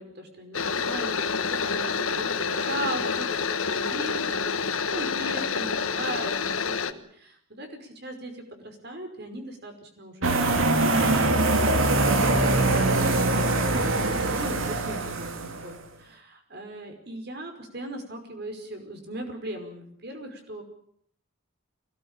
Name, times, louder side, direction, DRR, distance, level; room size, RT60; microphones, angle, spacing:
voice 1, 0.0-20.6, right 1 dB, 50° right, 5 dB, 5.3 m, -38 dB
sound 1, 0.5-6.9, left 5 dB, 90° left, 1.4 m, -28 dB
sound 2, 10.2-15.7, right 2 dB, 75° right, 2.8 m, -23 dB
23.5 x 18.5 x 9.0 m, 0.67 s
head